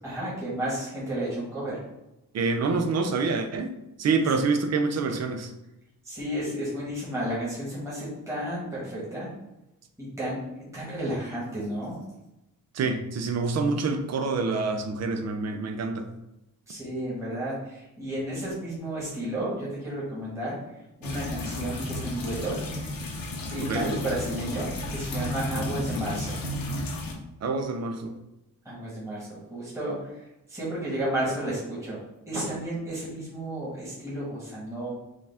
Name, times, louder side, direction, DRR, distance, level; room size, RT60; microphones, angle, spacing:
voice 1, 0.0-1.8 6.0-9.3 10.0-12.0 16.7-20.6 21.0-22.6 23.5-26.3 28.6-32.0 32.3-34.9, right 1 dB, 10° right, -8 dB, 1.5 m, -32 dB
voice 2, 2.3-3.7 4.0-5.5 12.7-16.1 23.6-23.9 27.4-28.1, right 4 dB, 50° right, 6 dB, 0.6 m, -26 dB
sound 1, 21.0-27.1, left 1 dB, 85° left, 1.0 m, -33 dB
5.0 x 2.4 x 3.4 m, 0.93 s
cardioid pair, 125°, 34 cm